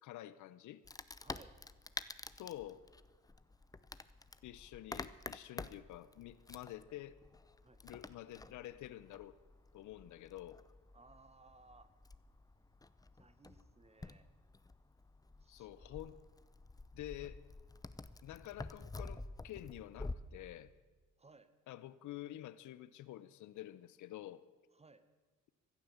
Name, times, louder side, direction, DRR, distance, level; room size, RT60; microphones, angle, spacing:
voice 1, 0.0-0.8 2.4-2.8 4.4-7.2 7.8-9.4 9.7-10.6 15.5-16.2 16.9-17.4 18.2-20.7 21.7-24.4, left 14 dB, 75° left, 15 dB, 0.7 m, -49 dB
Wood, 0.8-20.2, left 3 dB, 10° left, 0.6 m, -50 dB
voice 2, 1.2-1.5 7.6-7.8 10.9-11.9 13.1-14.3 15.4-16.2 21.2-21.5 24.7-25.0, right 3 dB, 20° right, 12 dB, 1.2 m, -62 dB
16.0 x 11.5 x 7.1 m, 1.3 s
cardioid pair, 90°, 30 cm